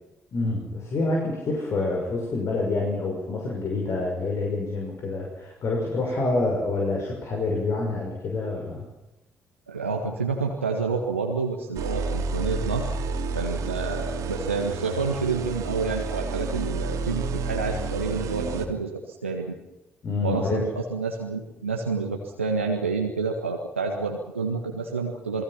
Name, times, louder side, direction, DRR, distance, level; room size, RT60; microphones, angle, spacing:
voice 1, 0.3-8.9 20.0-20.6, left 3 dB, 50° left, -1 dB, 6.1 m, -27 dB
voice 2, 9.7-12.9 13.3-19.6 20.2-25.4, right 4 dB, 90° right, 1 dB, 1.7 m, -29 dB
sound 1, 11.7-18.7, right 3 dB, 55° right, 2.8 m, -30 dB
28.5 x 20.5 x 5.9 m, 0.97 s
figure-of-eight pair, 45°, 7 cm